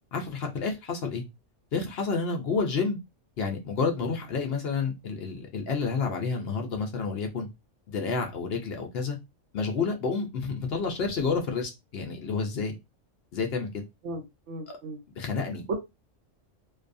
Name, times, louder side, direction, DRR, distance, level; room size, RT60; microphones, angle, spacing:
voice 1, 0.1-1.2 1.7-3.0 3.4-7.5 7.9-9.2 9.5-12.8 13.3-13.7 14.7-14.8 15.2-15.7, left 4 dB, 60° left, 4 dB, 0.8 m, -29 dB
voice 2, 14.0-15.0 15.7-15.8, right 3 dB, 80° right, 1 dB, 1.1 m, -35 dB
2.6 x 2.3 x 2.5 m, 0.22 s
omnidirectional pair, 1.3 m